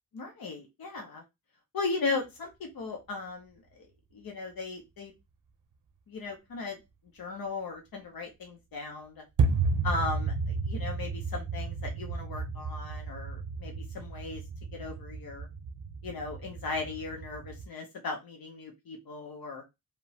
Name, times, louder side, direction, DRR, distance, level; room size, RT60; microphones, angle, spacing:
voice 1, 0.1-1.2 1.7-3.9 4.1-5.1 6.1-6.8 7.1-9.2 9.8-14.4 14.7-15.5 16.0-19.6, left 3 dB, 90° left, 2 dB, 0.7 m, -37 dB
sound 1, 9.4-17.7, right 4 dB, 65° right, 0.6 m, -33 dB
2.9 x 2.1 x 2.7 m, 0.22 s
wide cardioid pair, 75°, 35 cm